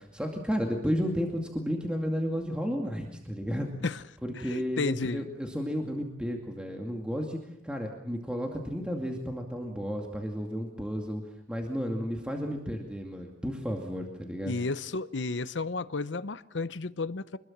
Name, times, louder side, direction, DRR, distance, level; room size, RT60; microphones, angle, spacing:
voice 1, 0.1-3.7 4.2-7.4 7.6-11.2 11.5-14.5, equal, 5° right, 2.3 m, -32 dB
voice 2, 4.4-5.3 14.4-17.4, left 3 dB, 85° left, 0.8 m, -32 dB
25.0 x 21.0 x 7.4 m
head